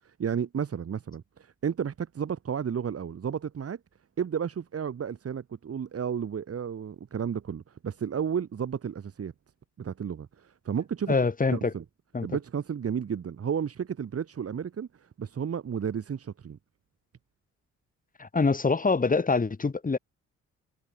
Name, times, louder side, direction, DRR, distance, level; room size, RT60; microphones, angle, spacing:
voice 1, 0.0-3.8 4.2-9.3 9.8-11.2 11.5-11.8 12.2-16.6, right 7 dB, 50° right, 7.2 m, -32 dB
voice 2, 11.1-11.7 12.1-12.3 18.2-20.0, left 4 dB, 25° left, 6.5 m, -25 dB
cardioid pair, 90°, 30 cm